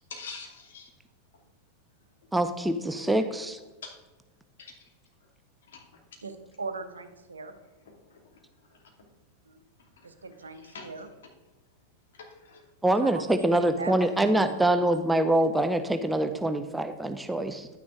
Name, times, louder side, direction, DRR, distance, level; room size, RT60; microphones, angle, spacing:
voice 1, 0.1-0.9 3.8-4.0 4.6-4.9 5.7-5.9 7.9-8.2 8.7-9.1 10.0-10.1 10.5-10.9 12.1-12.6, left 4 dB, 60° left, 1 dB, 2.4 m, -45 dB
voice 2, 2.3-3.6 12.8-17.7, right 1 dB, 5° right, 9 dB, 0.6 m, -25 dB
voice 3, 6.2-7.5 9.5-9.6 10.0-11.1 13.0-13.2 13.5-14.8, right 3 dB, 75° right, 8 dB, 1.0 m, -40 dB
10.5 x 9.6 x 3.8 m, 1.2 s
figure-of-eight pair, 90°, 0 cm